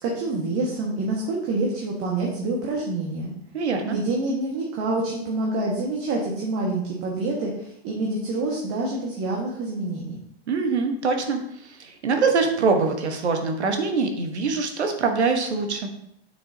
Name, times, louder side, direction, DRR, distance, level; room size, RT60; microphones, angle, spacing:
voice 1, 0.0-3.3 3.9-10.2, right 2 dB, 45° right, -2 dB, 1.6 m, -27 dB
voice 2, 3.5-4.0 10.5-15.9, right 4 dB, 90° right, 5 dB, 1.3 m, -24 dB
6.9 x 6.5 x 2.8 m, 0.76 s
hypercardioid pair, 120°, 33 cm